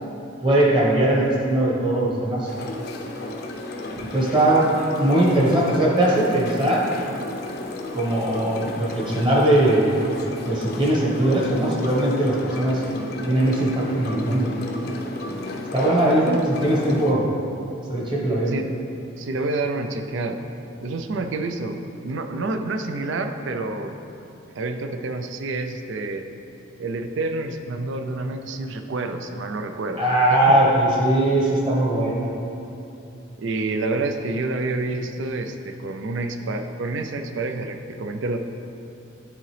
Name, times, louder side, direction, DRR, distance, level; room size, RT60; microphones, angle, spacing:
voice 1, 0.4-2.5 4.0-4.7 5.0-6.9 7.9-9.9 10.4-12.8 13.3-14.5 15.7-16.2 16.5-17.3 17.9-18.5 30.0-32.3, right 1 dB, 25° right, -4 dB, 1.2 m, -20 dB
sound 1, 2.5-17.1, left 1 dB, 50° left, 0.6 m, -33 dB
voice 2, 18.5-18.8 19.2-20.4 20.8-21.8 22.0-24.0 24.6-26.3 26.8-30.0 30.3-30.6 33.4-38.4, right 2 dB, 65° right, 6 dB, 0.4 m, -28 dB
11.0 x 3.8 x 3.3 m, 2.8 s
head